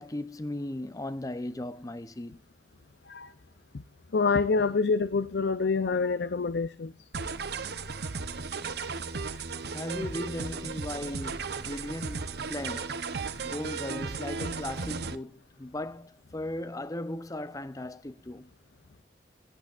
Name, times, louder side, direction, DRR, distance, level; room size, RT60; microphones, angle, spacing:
voice 1, 0.0-2.4 9.3-9.4 9.7-13.0 13.4-15.3 15.6-18.5, left 1 dB, 20° left, 0.7 m, -37 dB
voice 2, 4.1-6.9, left 4 dB, 65° left, 0.6 m, -26 dB
sound 1, 7.1-15.2, right 4 dB, 65° right, 0.8 m, -35 dB
16.5 x 11.0 x 2.5 m
head